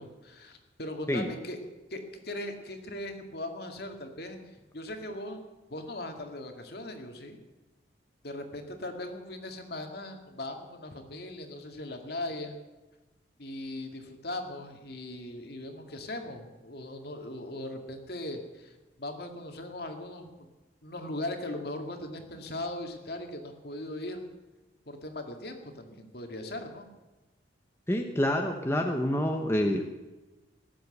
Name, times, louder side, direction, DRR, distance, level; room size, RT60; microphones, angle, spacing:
voice 1, 0.0-1.6 1.9-4.4 4.7-5.4 5.7-7.4 8.2-12.6 13.4-20.5 20.8-24.2 24.9-26.9, left 1 dB, 55° left, 5 dB, 2.1 m, -39 dB
voice 2, 27.9-29.9, left 1 dB, 15° left, 3 dB, 0.9 m, -27 dB
18.5 x 7.7 x 8.0 m, 1.1 s
head